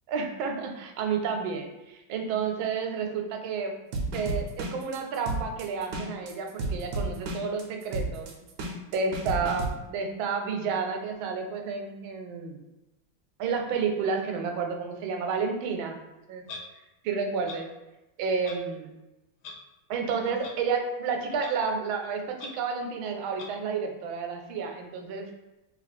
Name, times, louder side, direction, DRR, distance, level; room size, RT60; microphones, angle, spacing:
voice 1, 0.1-3.7 4.1-8.3 8.9-12.6 13.4-16.0 16.3-16.4 17.0-17.7 18.2-18.9 19.9-25.3, right 5 dB, 85° right, 4 dB, 1.4 m, -30 dB
sound 1, 3.9-9.7, right 2 dB, 70° right, 1.1 m, -32 dB
Clock, 16.5-16.6 17.5-17.6 18.4-18.6 19.4-19.5 20.4-20.5 21.4-21.5 22.4-22.5 23.4-23.5, left 4 dB, 75° left, 1.3 m, -40 dB
3.0 x 2.9 x 4.1 m, 1.0 s
omnidirectional pair, 2.1 m